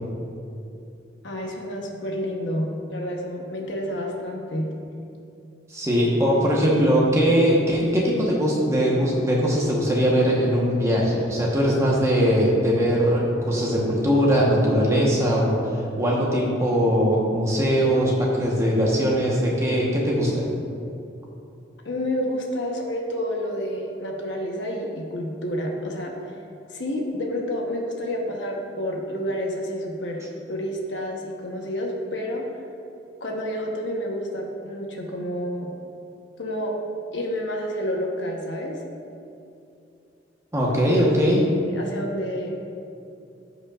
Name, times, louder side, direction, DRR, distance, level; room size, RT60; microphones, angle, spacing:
voice 1, 1.2-4.8 5.9-6.4 21.8-26.1 26.7-32.4 33.2-35.7 36.4-36.7 37.1-38.8 41.7-42.5, equal, 75° left, 0 dB, 1.1 m, -29 dB
voice 2, 5.7-15.6 16.0-20.5 40.5-41.5, equal, 15° right, -4 dB, 1.2 m, -21 dB
14.5 x 5.3 x 2.5 m, 2.6 s
head